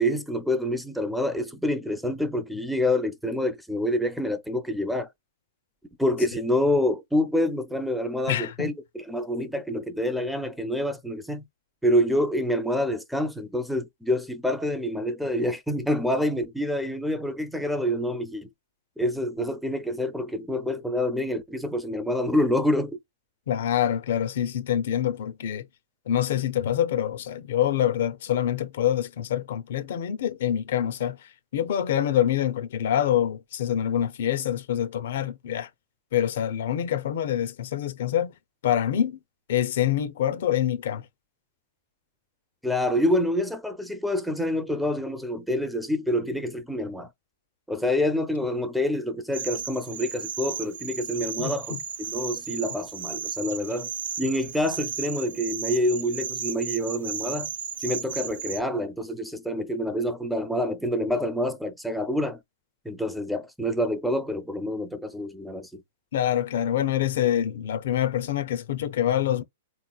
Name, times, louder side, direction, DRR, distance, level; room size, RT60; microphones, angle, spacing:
voice 1, 0.0-5.1 6.0-11.4 11.8-18.5 19.0-23.0 42.6-47.1 47.7-53.9 54.2-57.5 57.8-62.4 62.9-65.8, left 1 dB, ahead, 0.4 m, -27 dB
voice 2, 8.3-8.7 23.5-25.7 26.1-31.2 31.5-35.7 36.1-38.3 38.6-39.2 39.5-41.1 51.4-51.8 66.1-69.4, left 10 dB, 65° left, 0.5 m, -26 dB
sound 1, 49.3-58.6, right 7 dB, 85° right, 0.6 m, -34 dB
3.7 x 3.0 x 2.3 m
hypercardioid pair, 155°, 0 cm